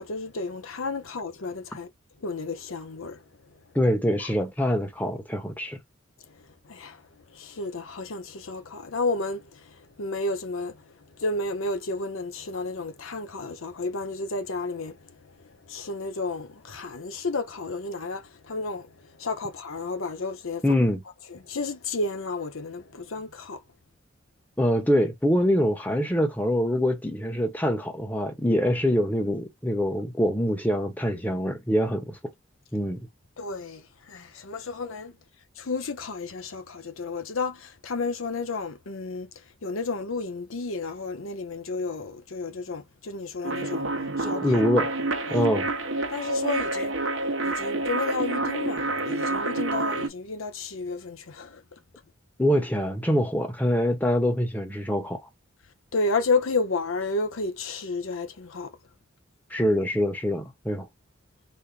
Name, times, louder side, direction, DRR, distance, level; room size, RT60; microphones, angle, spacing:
voice 1, 0.0-1.9 2.2-3.5 6.2-20.6 21.3-23.6 33.4-35.2 35.6-43.9 44.2-44.6 45.3-45.5 46.1-47.0 47.4-51.8 55.9-58.8, left 3 dB, 80° left, 0.8 m, -32 dB
voice 2, 3.7-5.8 20.6-21.0 24.6-32.2 32.7-33.1 44.2-44.9 45.3-45.7 52.4-55.2 59.5-60.9, equal, 10° left, 0.9 m, -24 dB
sound 1, 43.4-50.1, right 2 dB, 65° right, 0.9 m, -28 dB
4.2 x 2.0 x 3.3 m
head